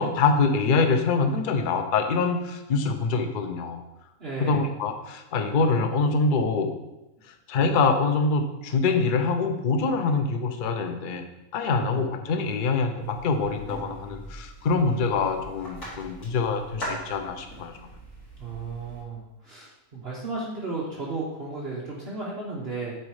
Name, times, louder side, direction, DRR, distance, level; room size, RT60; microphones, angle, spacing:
voice 1, 0.0-3.8 4.4-6.7 7.5-11.2 11.5-17.7, left 4 dB, 50° left, 5 dB, 0.6 m, -25 dB
voice 2, 4.2-4.7 11.7-12.1 18.4-23.0, right 3 dB, 45° right, -4 dB, 1.2 m, -34 dB
sound 1, 13.0-19.0, equal, 75° left, 3.6 m, -40 dB
7.9 x 4.1 x 4.8 m, 0.96 s
omnidirectional pair, 1.6 m